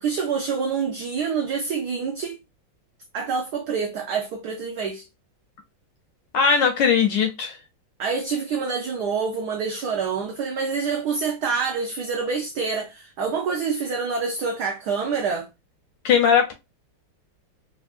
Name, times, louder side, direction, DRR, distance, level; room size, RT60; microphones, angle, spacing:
voice 1, 0.0-2.4 3.1-5.1 8.0-15.5, right 5 dB, 80° right, 0.9 m, -26 dB
voice 2, 6.3-7.6 16.0-16.5, left 6 dB, 75° left, 1.0 m, -19 dB
3.4 x 2.3 x 2.3 m
omnidirectional pair, 2.3 m